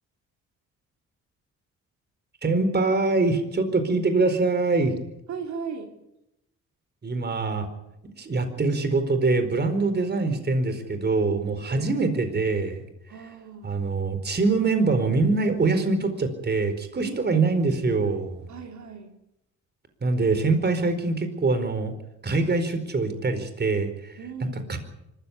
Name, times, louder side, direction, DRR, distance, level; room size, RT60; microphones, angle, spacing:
voice 1, 2.4-4.9 7.0-7.7 8.2-12.8 13.6-18.5 20.0-21.9 22.2-24.2 24.7-24.8, right 3 dB, 35° right, 9 dB, 4.6 m, -24 dB
voice 2, 5.3-6.0 11.7-11.9 13.1-13.7 17.0-17.2 18.5-19.1 24.2-24.7, right 6 dB, 70° right, 3 dB, 3.7 m, -37 dB
25.0 x 15.0 x 9.7 m, 0.87 s
cardioid pair, 90°, 30 cm